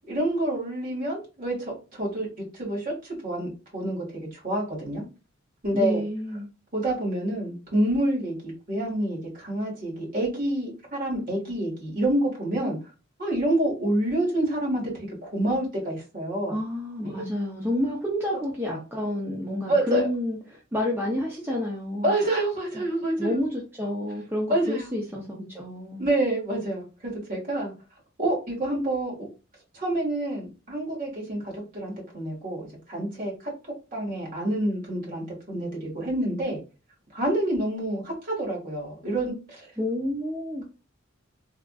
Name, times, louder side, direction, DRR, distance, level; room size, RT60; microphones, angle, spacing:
voice 1, 0.1-2.3 2.5-5.0 5.6-6.0 6.7-12.8 13.2-14.9 15.2-16.6 17.0-17.3 19.7-20.1 22.0-23.4 24.5-24.9 26.0-27.7 28.2-29.3 29.7-33.5 33.9-36.6 37.1-39.7, right 1 dB, 45° right, 1.5 m, -28 dB
voice 2, 5.7-6.5 16.5-22.1 22.7-22.8 23.2-26.0 39.8-40.6, left 1 dB, 10° right, 0.5 m, -29 dB
3.5 x 2.4 x 2.3 m
head